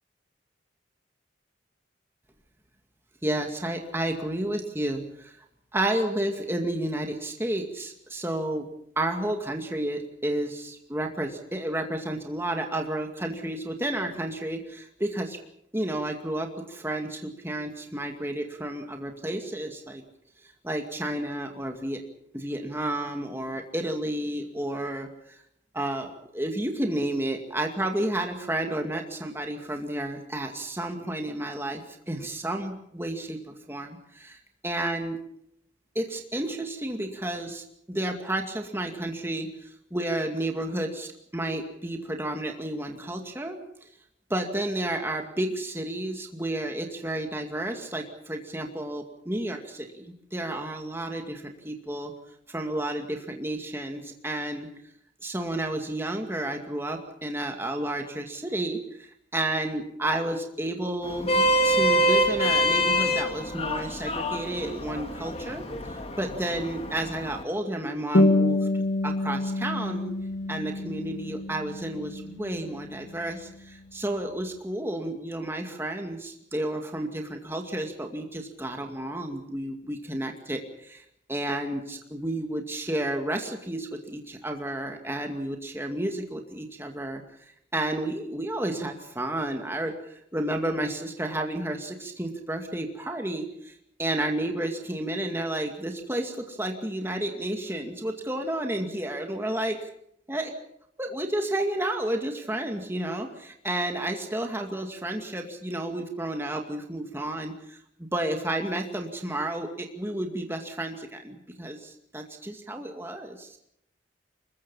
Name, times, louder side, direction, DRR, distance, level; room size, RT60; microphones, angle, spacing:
voice 1, 3.2-5.3 5.7-8.7 9.0-15.4 15.7-20.0 20.6-22.0 22.3-25.4 25.7-35.2 36.0-43.6 44.3-52.1 52.5-54.7 55.2-65.7 66.2-68.7 69.0-70.1 70.5-87.2 87.7-99.8 100.3-100.5 101.0-113.6, right 1 dB, 15° right, 3 dB, 2.2 m, -31 dB
Vehicle horn car horn honking, 61.0-67.4, equal, 30° left, 2.2 m, -26 dB
sound 1, 68.1-73.1, left 2 dB, 70° left, 2.6 m, -27 dB
25.0 x 22.0 x 5.6 m, 0.74 s
head